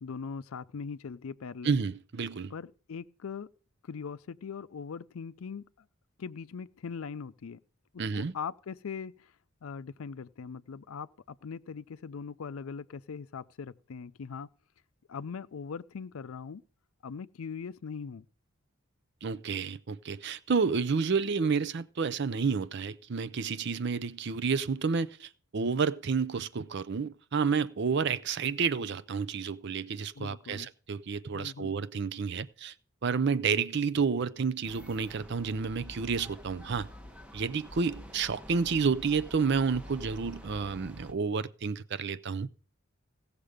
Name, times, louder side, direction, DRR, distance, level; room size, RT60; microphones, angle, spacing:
voice 1, 0.0-1.8 2.5-3.5 3.8-5.9 6.2-7.6 7.9-9.3 9.6-14.5 15.1-16.6 17.0-18.3 30.2-30.7 31.3-31.7, left 5 dB, 80° left, 0.5 m, -41 dB
voice 2, 1.6-2.5 8.0-8.3 19.2-32.7 33.0-36.9 37.3-42.5, right 5 dB, 55° right, 0.5 m, -30 dB
sound 1, 34.6-41.1, equal, 5° right, 0.8 m, -47 dB
16.5 x 6.7 x 5.0 m
head